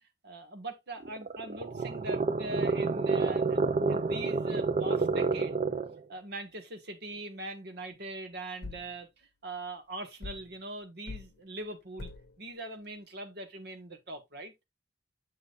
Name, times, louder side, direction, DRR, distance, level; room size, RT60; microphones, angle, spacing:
voice 1, 0.2-5.6 6.1-12.1 12.4-14.5, right 2 dB, 60° right, 1.5 m, -41 dB
sound 1, 1.0-6.0, right 3 dB, 40° right, 0.5 m, -29 dB
sound 2, 8.6-8.9 10.2-10.5 11.1-11.3 12.0-12.3, left 3 dB, 60° left, 0.8 m, -42 dB
8.4 x 6.3 x 2.5 m
head